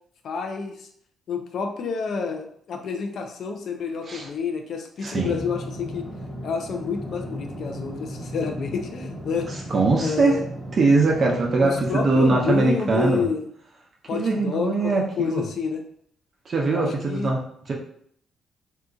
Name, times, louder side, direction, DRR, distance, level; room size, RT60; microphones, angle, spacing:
voice 1, 0.2-0.9 1.3-6.1 6.4-10.4 11.6-13.4 14.1-15.8 16.7-17.3, left 5 dB, 60° left, 4 dB, 0.5 m, -29 dB
voice 2, 5.0-5.3 9.5-10.4 10.7-13.2 14.1-15.4 16.5-17.4 17.7-17.8, right 3 dB, 45° right, -1 dB, 0.7 m, -21 dB
sound 1, 5.1-12.6, equal, 15° left, 1.1 m, -35 dB
2.8 x 2.4 x 3.7 m, 0.66 s
cardioid pair, 90°, 0 cm